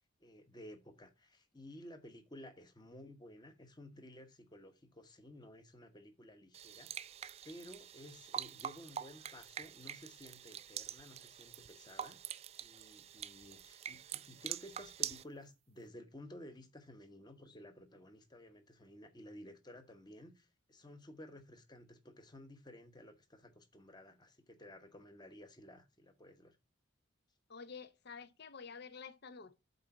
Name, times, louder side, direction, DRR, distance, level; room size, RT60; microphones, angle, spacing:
voice 1, 0.2-12.2 12.6-26.6, left 1 dB, 20° left, 1.1 m, -54 dB
sound 1, 6.5-15.2, right 9 dB, 30° right, 0.3 m, -45 dB
voice 2, 27.5-29.5, left 5 dB, 55° left, 0.7 m, -50 dB
8.1 x 3.9 x 5.9 m
head